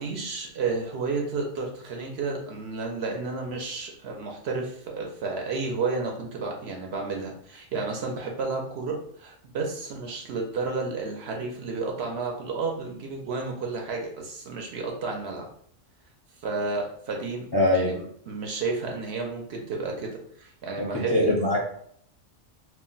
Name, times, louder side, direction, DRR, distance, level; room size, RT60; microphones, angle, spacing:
voice 1, 0.0-15.5 16.4-20.1 20.4-21.1, right 4 dB, 65° right, 1 dB, 0.8 m, -31 dB
voice 2, 17.5-17.9 20.8-21.6, left 1 dB, 30° left, -4 dB, 0.5 m, -22 dB
2.4 x 2.1 x 3.8 m, 0.65 s
omnidirectional pair, 1.3 m